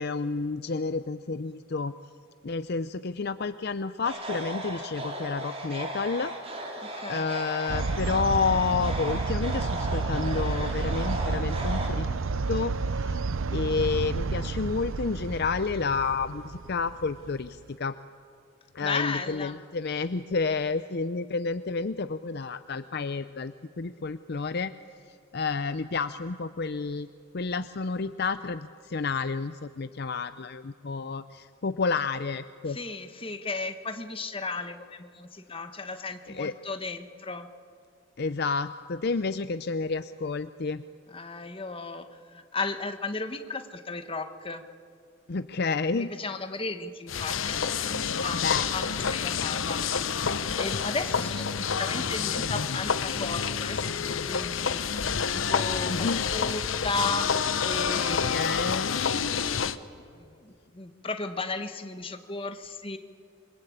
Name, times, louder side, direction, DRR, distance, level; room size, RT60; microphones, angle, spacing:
voice 1, 0.0-1.9 2.4-6.3 7.1-12.1 12.5-13.2 13.5-17.9 18.7-24.7 25.3-27.1 27.3-32.8 36.4-36.5 38.2-40.8 45.3-46.1 48.4-48.7 55.9-56.2 58.1-59.0, left 4 dB, 55° left, 12 dB, 0.6 m, -30 dB
sound 1, 4.0-11.9, right 1 dB, 30° right, 4.0 m, -36 dB
voice 2, 6.8-7.3 18.8-19.6 32.7-37.5 41.1-44.6 45.9-49.8 50.6-54.9 55.3-58.6 60.0-63.0, left 3 dB, 25° left, 8 dB, 1.4 m, -35 dB
sound 2, 7.7-17.5, right 4 dB, 80° right, 0.6 m, -30 dB
sound 3, 47.1-59.8, left 6 dB, 75° left, 0.9 m, -28 dB
27.5 x 23.5 x 8.7 m, 2.3 s
head